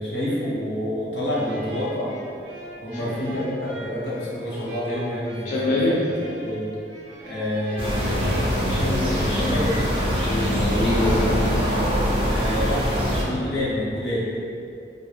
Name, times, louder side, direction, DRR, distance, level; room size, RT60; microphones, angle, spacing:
voice 1, 0.0-2.1 2.8-5.5 6.0-6.1 6.4-6.7 7.2-9.8 12.3-14.3, left 1 dB, 85° left, -7 dB, 0.7 m, -28 dB
sound 1, 1.3-9.3, right 1 dB, 80° right, 0.5 m, -40 dB
voice 2, 5.5-6.1 10.3-11.6, left 1 dB, 50° left, -8 dB, 0.3 m, -24 dB
sound 2, 7.8-13.2, equal, 30° right, 0.4 m, -23 dB
2.2 x 2.1 x 2.9 m, 2.5 s
head